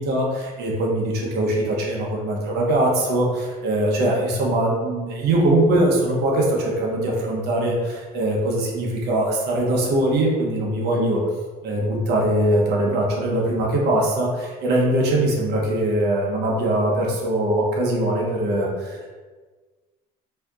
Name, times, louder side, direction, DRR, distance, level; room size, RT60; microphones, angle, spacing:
voice 1, 0.0-11.2 11.6-19.1, right 1 dB, 75° right, -2 dB, 0.9 m, -22 dB
4.2 x 2.8 x 2.4 m, 1.4 s
cardioid pair, 110°, 17 cm